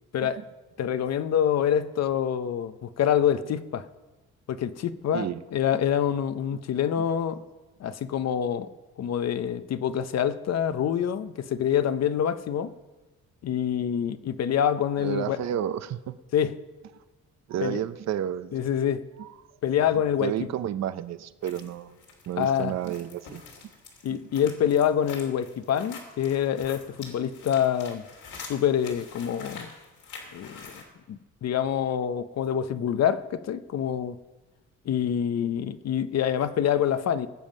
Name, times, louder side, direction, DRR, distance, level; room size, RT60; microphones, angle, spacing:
voice 1, 0.8-3.9 4.5-7.4 7.8-8.7 9.0-12.7 13.4-15.4 16.3-16.6 17.6-17.8 18.5-19.0 19.6-20.3 22.4-22.7 24.0-28.0 28.5-29.7 30.3-30.7 31.1-34.2 34.9-37.3, left 9 dB, 60° left, 12 dB, 0.7 m, -26 dB
voice 2, 15.0-16.2 17.5-18.5 19.2-19.3 20.2-22.0 22.3-23.4 24.1-24.2, right 10 dB, 60° right, 13 dB, 0.7 m, -31 dB
sound 1, 21.4-30.8, left 4 dB, 75° left, 3.2 m, -46 dB
19.0 x 7.3 x 5.3 m, 1.2 s
cardioid pair, 90°, 30 cm